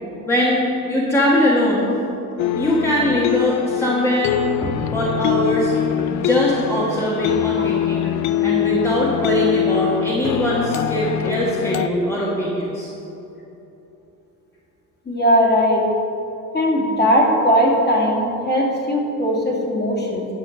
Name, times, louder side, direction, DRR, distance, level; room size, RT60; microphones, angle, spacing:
voice 1, 0.3-1.9 2.5-4.4 4.9-5.7 6.1-8.1 8.4-12.9, equal, 5° left, -6 dB, 1.5 m, -21 dB
sound 1, 2.4-11.9, left 10 dB, 55° left, 0.4 m, -23 dB
voice 2, 15.1-15.8 16.5-20.3, equal, 30° left, -3 dB, 2.5 m, -18 dB
10.5 x 5.1 x 6.6 m, 3.0 s
cardioid pair, 105°, 36 cm